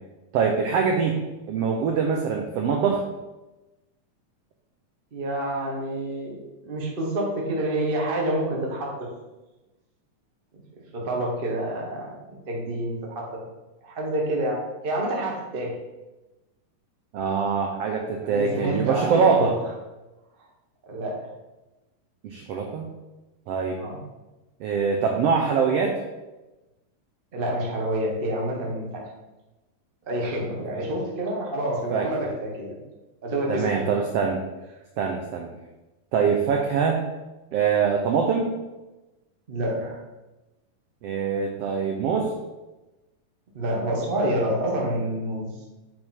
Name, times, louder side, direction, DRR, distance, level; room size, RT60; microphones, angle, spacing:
voice 1, 0.3-1.2 1.5-3.0 17.1-19.5 22.2-22.9 23.5-23.8 24.6-26.0 30.8-30.9 31.9-32.1 33.5-34.4 35.0-35.5 36.1-37.0 37.5-38.5 41.0-42.3, right 6 dB, 85° right, 1 dB, 1.4 m, -23 dB
voice 2, 5.1-6.4 6.6-9.1 10.9-13.4 13.8-15.8 18.2-19.5 20.8-21.2 23.8-24.0 27.3-29.0 30.1-32.8 33.2-33.9 39.5-40.0 43.5-45.5, right 1 dB, 65° right, -2 dB, 0.5 m, -28 dB
8.6 x 4.4 x 4.3 m, 1.1 s
omnidirectional pair, 3.7 m